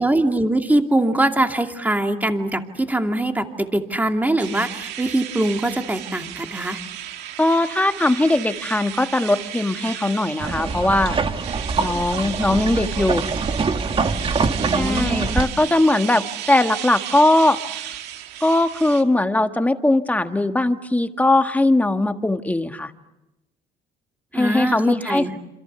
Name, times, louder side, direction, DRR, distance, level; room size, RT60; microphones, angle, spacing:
voice 1, 0.0-6.8 14.6-15.6 24.3-25.4, right 1 dB, 10° right, 4 dB, 2.6 m, -22 dB
sound 1, 4.4-19.0, right 12 dB, 85° right, 2.1 m, -34 dB
voice 2, 7.4-11.2 11.8-13.2 14.7-17.6 18.4-22.9 24.3-25.2, left 2 dB, 10° left, 7 dB, 1.7 m, -20 dB
sound 2, 10.4-15.5, right 4 dB, 30° right, 1.7 m, -24 dB
27.5 x 27.0 x 7.0 m, 0.95 s
cardioid pair, 110°, 17 cm